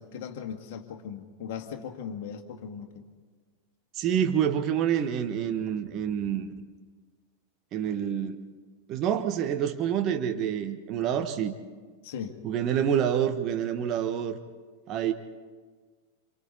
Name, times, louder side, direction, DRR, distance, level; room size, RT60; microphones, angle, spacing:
voice 1, 0.0-3.0 12.0-12.4, left 7 dB, 50° left, 5 dB, 2.0 m, -38 dB
voice 2, 3.9-6.5 7.7-8.4 8.9-11.5 12.4-14.4 14.9-15.1, right 9 dB, 35° right, 7 dB, 1.4 m, -27 dB
28.5 x 27.5 x 4.1 m, 1.5 s
figure-of-eight pair, 90°, 0 cm